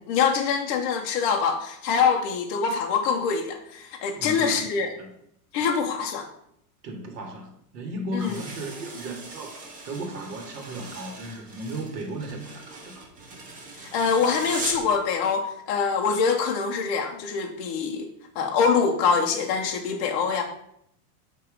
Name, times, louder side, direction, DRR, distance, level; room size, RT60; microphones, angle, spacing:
voice 1, 0.1-4.9 5.5-6.3 8.1-8.4 13.9-18.1 18.4-20.4, left 6 dB, 30° left, 2 dB, 0.4 m, -24 dB
voice 2, 4.1-5.1 6.8-13.1, right 1 dB, 80° right, 3 dB, 1.6 m, -36 dB
sound 1, 8.2-15.0, right 3 dB, 15° right, 0.8 m, -39 dB
6.9 x 2.9 x 4.9 m, 0.72 s
supercardioid pair, 150°, 47 cm